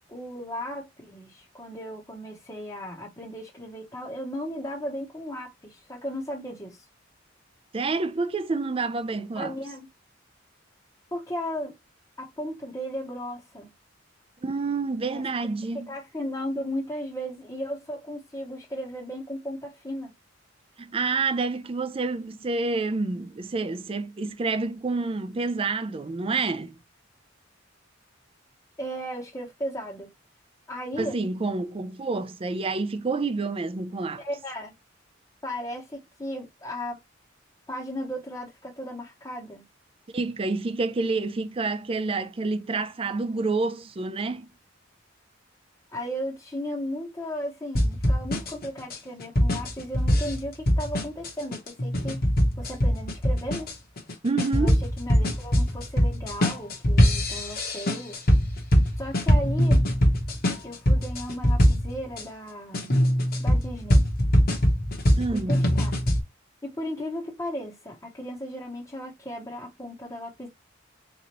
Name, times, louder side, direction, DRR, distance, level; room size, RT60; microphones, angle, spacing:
voice 1, 0.1-6.8 9.4-9.9 11.1-11.7 12.2-13.7 15.1-15.2 15.7-20.1 28.8-30.1 30.7-31.2 34.2-34.7 35.4-37.0 37.7-39.6 45.9-52.2 52.6-53.7 54.5-58.2 59.0-59.8 60.6-63.0 63.4-64.1 65.5-66.0 66.6-70.5, equal, 15° left, 0.8 m, -35 dB
voice 2, 7.7-9.5 14.4-15.9 20.9-26.8 31.0-34.2 40.1-44.5 54.2-54.8 65.2-65.6, right 3 dB, 30° right, 0.4 m, -28 dB
sound 1, 47.8-62.2 62.7-66.2, equal, 50° left, 1.0 m, -22 dB
3.8 x 3.0 x 2.9 m
head